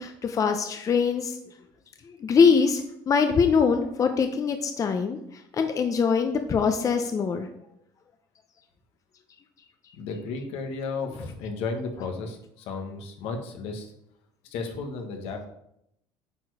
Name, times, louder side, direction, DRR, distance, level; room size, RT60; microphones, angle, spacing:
voice 1, 0.0-1.4 2.2-5.2 5.6-7.5, left 5 dB, 35° left, 6 dB, 0.7 m, -23 dB
voice 2, 10.0-13.9 14.4-15.5, left 4 dB, 75° left, 4 dB, 1.5 m, -34 dB
9.0 x 4.6 x 4.8 m, 0.78 s
cardioid pair, 115°, 10 cm